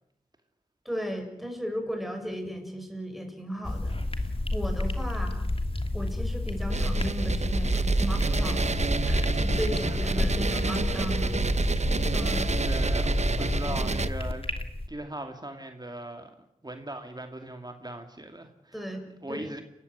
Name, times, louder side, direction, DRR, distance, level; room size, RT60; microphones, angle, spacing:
voice 1, 0.8-5.5 5.9-8.7 9.0-11.6 12.1-12.6 18.7-19.5, equal, ahead, 4 dB, 6.9 m, -36 dB
sound 1, 3.6-14.9, left 2 dB, 40° left, 2.7 m, -30 dB
sound 2, 6.7-14.1, right 3 dB, 50° right, 0.9 m, -28 dB
voice 2, 9.8-10.3 12.6-14.5 14.9-16.3 16.6-18.8 19.2-19.6, right 1 dB, 30° right, 5 dB, 2.5 m, -39 dB
30.0 x 16.0 x 9.6 m, 0.84 s
wide cardioid pair, 65°, 15 cm